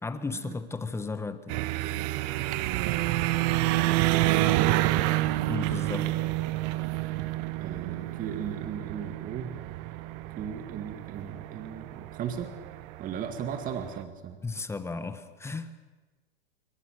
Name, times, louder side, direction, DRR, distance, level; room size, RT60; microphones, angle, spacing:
voice 1, 0.0-1.6 5.5-6.2 14.4-15.7, left 3 dB, 10° left, 11 dB, 1.3 m, -34 dB
sound 1, 1.5-14.0, right 17 dB, 45° right, 1.3 m, -29 dB
voice 2, 4.2-5.1 7.6-9.5 10.4-12.5 13.0-14.4, right 8 dB, 30° right, 7 dB, 2.0 m, -37 dB
27.5 x 24.0 x 6.6 m, 1.2 s
hypercardioid pair, 125°, 29 cm